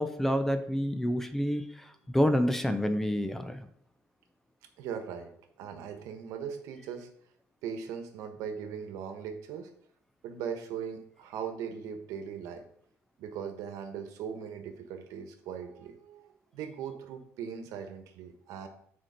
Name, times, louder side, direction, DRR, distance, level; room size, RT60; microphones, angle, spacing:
voice 1, 0.0-3.7, equal, 5° left, 9 dB, 0.4 m, -28 dB
voice 2, 4.8-7.1 7.6-9.7 10.2-12.7 13.2-16.2 16.5-18.7, right 7 dB, 80° right, 6 dB, 1.2 m, -39 dB
9.0 x 4.4 x 4.4 m, 0.64 s
cardioid pair, 175°, 6 cm